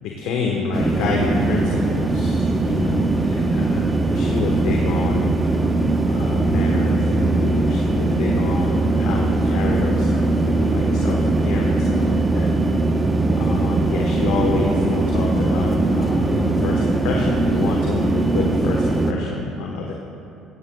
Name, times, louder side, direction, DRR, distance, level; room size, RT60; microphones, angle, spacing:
voice 1, 0.0-5.3 6.0-12.5 12.9-13.0 13.3-19.9, left 4 dB, 70° left, 0 dB, 1.2 m, -28 dB
sound 1, 0.7-19.1, right 2 dB, 20° right, 1.0 m, -20 dB
15.5 x 15.5 x 2.3 m, 2.6 s
hypercardioid pair, 65°, 0 cm